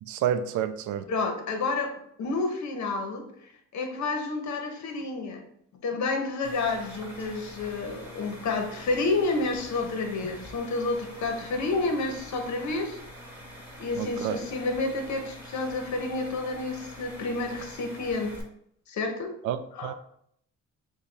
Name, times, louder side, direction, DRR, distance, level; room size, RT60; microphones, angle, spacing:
voice 1, 0.0-1.1 14.0-14.4 19.4-19.9, right 9 dB, 75° right, 11 dB, 0.4 m, -29 dB
voice 2, 1.1-3.3 3.7-5.4 5.8-13.0 13.8-18.3 18.9-19.3 19.7-19.9, left 3 dB, 65° left, 5 dB, 0.9 m, -30 dB
sound 1, 6.4-18.4, equal, 5° right, 1.4 m, -45 dB
6.5 x 2.3 x 3.3 m, 0.69 s
cardioid pair, 90°, 30 cm